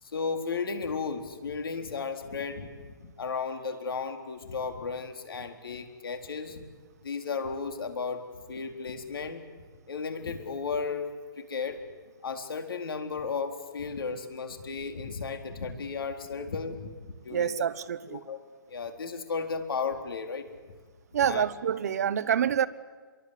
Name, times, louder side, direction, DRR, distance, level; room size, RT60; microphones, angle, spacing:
voice 1, 0.0-6.6 7.0-9.4 9.9-11.8 12.2-17.5 18.1-18.4 18.7-20.5 21.2-21.4, left 5 dB, 70° left, 4.0 m, -34 dB
voice 2, 17.3-18.2 21.1-22.7, right 9 dB, 45° right, 0.9 m, -27 dB
27.0 x 23.0 x 8.4 m
hypercardioid pair, 175°, 12 cm